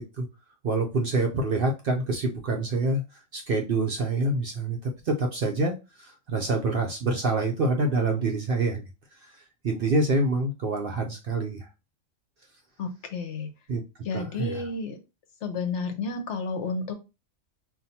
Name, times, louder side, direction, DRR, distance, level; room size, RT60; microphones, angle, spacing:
voice 1, 0.6-8.8 9.1-11.7 13.7-13.8 14.1-14.7, right 2 dB, 55° right, 2 dB, 0.6 m, -27 dB
voice 2, 12.8-13.5 14.0-15.0 15.4-16.9, left 3 dB, 65° left, 7 dB, 0.9 m, -31 dB
5.5 x 2.5 x 2.7 m, 0.28 s
omnidirectional pair, 1.4 m